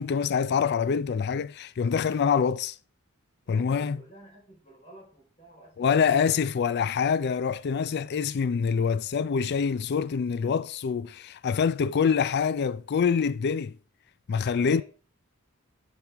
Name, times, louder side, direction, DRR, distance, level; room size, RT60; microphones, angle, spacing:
voice 1, 0.0-2.8 3.5-4.0 5.8-13.8 14.3-14.8, left 6 dB, 50° left, 0.4 m, -25 dB
voice 2, 3.4-6.4 14.5-14.8, right 1 dB, 30° left, 3.9 m, -53 dB
11.0 x 6.0 x 3.4 m
head